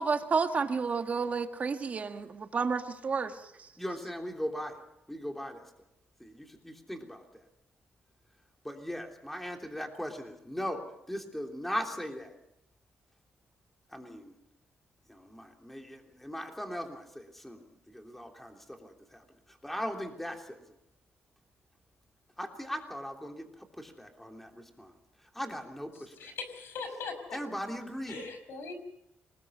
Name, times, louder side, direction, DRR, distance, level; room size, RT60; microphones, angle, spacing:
voice 1, 0.0-3.4, right 5 dB, 40° right, 7 dB, 1.6 m, -30 dB
voice 2, 3.8-4.8 5.1-5.6 6.2-7.4 8.6-12.3 13.9-14.3 15.1-20.6 22.4-23.5 23.8-24.9 25.3-26.1 27.3-28.2, equal, 5° left, 3 dB, 3.2 m, -39 dB
voice 3, 25.9-27.4 28.1-28.7, left 4 dB, 80° left, 8 dB, 5.7 m, -40 dB
27.0 x 20.0 x 5.5 m, 0.82 s
cardioid pair, 120°, 4 cm